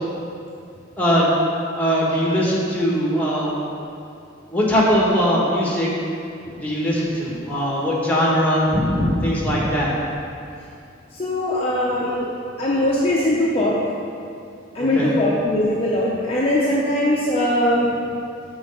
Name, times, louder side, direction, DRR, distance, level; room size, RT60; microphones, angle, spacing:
voice 1, 1.0-1.4 1.8-3.7 4.5-5.9 6.5-9.9 14.8-15.2, equal, 10° left, -5 dB, 1.2 m, -20 dB
voice 2, 11.1-12.3 12.6-13.8 14.7-17.9, left 1 dB, 30° left, -6 dB, 0.6 m, -20 dB
6.2 x 3.9 x 5.4 m, 2.5 s
head